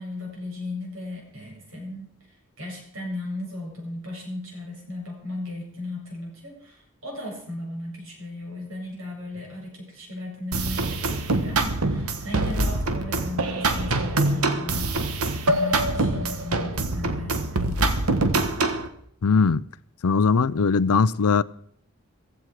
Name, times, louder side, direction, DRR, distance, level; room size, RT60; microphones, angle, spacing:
voice 1, 0.0-2.2 2.6-18.0, left 1 dB, 65° right, 7.0 m, -36 dB
sound 1, 10.5-18.9, right 2 dB, 85° right, 1.5 m, -24 dB
voice 2, 19.2-19.6 20.0-21.4, left 5 dB, 85° left, 0.5 m, -20 dB
15.5 x 15.0 x 4.9 m
head